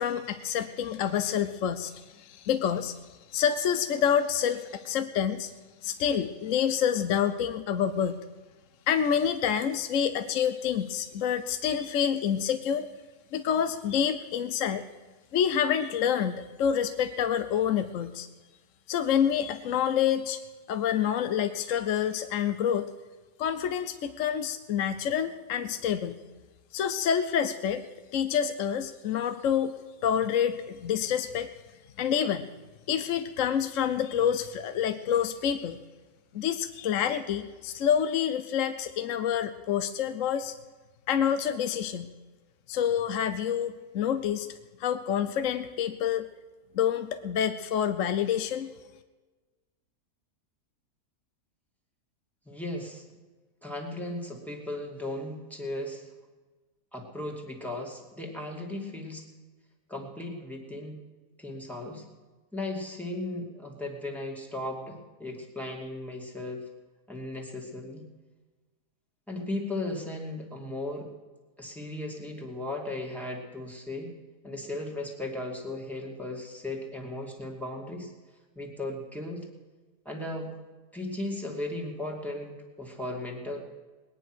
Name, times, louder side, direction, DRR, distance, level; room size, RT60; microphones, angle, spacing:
voice 1, 0.0-3.0 3.3-5.5 5.8-8.2 8.9-12.9 13.3-14.8 15.3-18.3 18.9-20.4 20.7-22.9 23.4-26.2 26.7-27.9 28.1-29.7 30.0-31.5 32.0-32.5 32.9-35.8 36.3-40.5 41.1-42.1 42.7-44.5 44.8-46.3 46.7-48.7, left 8 dB, 65° left, 10 dB, 1.0 m, -27 dB
voice 2, 52.5-53.0 53.6-56.1 56.9-59.2 59.9-61.0 61.4-62.0 62.5-66.6 67.1-68.1 69.3-71.1 71.6-74.1 74.4-78.1 78.6-79.5 80.0-80.5 80.9-83.6, left 1 dB, ahead, 0 dB, 2.4 m, -36 dB
20.5 x 10.0 x 6.2 m, 1.3 s
omnidirectional pair, 1.6 m